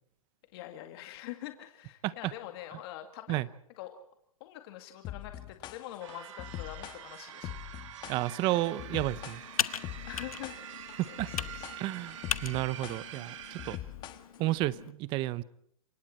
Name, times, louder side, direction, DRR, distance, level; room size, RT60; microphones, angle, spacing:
voice 1, 0.5-3.4 3.8-4.1 4.4-7.6 10.1-10.6 11.1-11.7, left 13 dB, 45° left, 6 dB, 2.1 m, -44 dB
sound 1, 5.0-14.6, left 13 dB, 25° left, 1.3 m, -43 dB
sound 2, 6.0-13.8, right 11 dB, 60° right, 2.5 m, -46 dB
voice 2, 8.1-9.4 11.0-11.3 11.8-13.8 14.4-15.4, right 17 dB, 30° right, 19 dB, 0.8 m, -32 dB
Computer keyboard, 8.2-14.9, left 9 dB, 85° left, 1.0 m, -40 dB
28.0 x 23.0 x 4.4 m, 0.66 s
hypercardioid pair, 145°, 18 cm